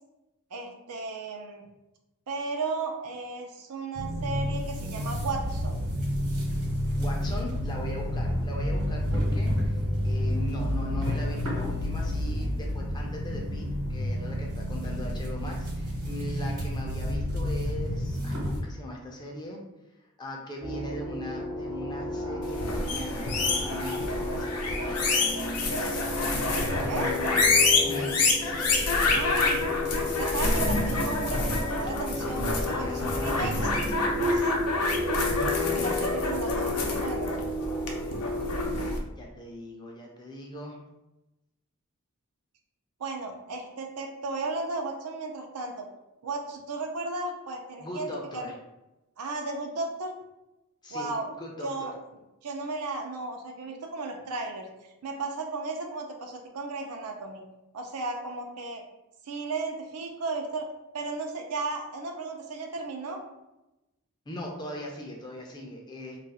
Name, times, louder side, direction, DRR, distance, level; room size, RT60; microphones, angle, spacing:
voice 1, 0.5-1.6 2.3-5.8 26.8-27.4 29.0-29.7 30.1-33.7 34.2-34.5 35.4-37.4 43.0-45.9 46.2-48.5 49.2-50.1 50.9-51.3 51.6-51.9 52.4-54.7 55.0-57.4 57.7-58.8 59.2-60.7 60.9-63.2, right 3 dB, 90° right, 3 dB, 0.5 m, -35 dB
sound 1, 3.9-18.6, equal, 70° right, 1.1 m, -29 dB
voice 2, 7.0-19.6 20.2-26.4 26.8-27.5 27.8-29.6 32.5-33.6 35.3-36.1 38.9-40.8 47.8-48.5 50.8-51.1 51.4-51.9 64.3-66.2, left 1 dB, 20° left, -1 dB, 0.5 m, -39 dB
sound 2, 20.6-38.9, left 2 dB, 35° right, 0.6 m, -33 dB
sound 3, 22.5-39.0, left 3 dB, 85° left, 0.6 m, -28 dB
2.4 x 2.4 x 4.0 m, 0.96 s
head